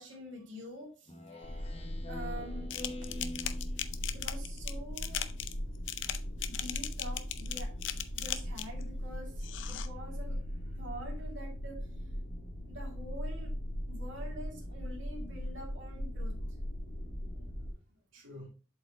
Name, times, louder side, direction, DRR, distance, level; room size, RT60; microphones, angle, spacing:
voice 1, 0.0-2.7 4.1-5.3 6.5-12.2 12.7-13.5 13.9-16.3, equal, 70° right, 2.5 m, -47 dB
Speech synthesizer, 1.1-4.1, left 1 dB, 30° left, 1.0 m, -45 dB
sound 1, 1.4-17.7, equal, 50° left, 3.3 m, -39 dB
sound 2, 2.7-8.8 9.4-9.9, left 11 dB, 70° left, 0.5 m, -38 dB
voice 2, 6.2-6.6 16.9-18.5, left 1 dB, 90° right, 2.3 m, -55 dB
7.7 x 5.2 x 2.9 m
head